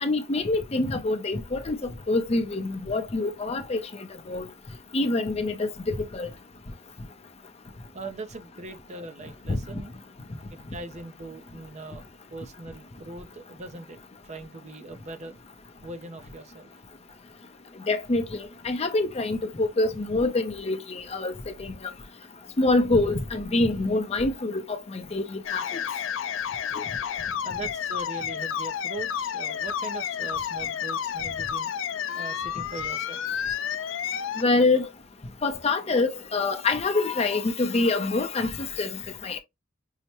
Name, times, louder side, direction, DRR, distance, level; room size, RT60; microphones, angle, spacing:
voice 1, 0.0-1.8 2.1-3.8 4.3-4.4 4.9-6.3 9.5-9.6 17.9-18.2 18.6-21.7 22.6-24.6 24.9-25.6 34.4-34.9 35.4-39.4, left 2 dB, 35° left, 0.6 m, -25 dB
voice 2, 7.9-10.0 10.5-15.4 15.8-16.8 27.4-31.7 32.1-33.3, right 2 dB, 35° right, 0.5 m, -41 dB
sound 1, 25.4-34.4, left 8 dB, 85° left, 0.4 m, -31 dB
5.6 x 2.1 x 2.9 m
head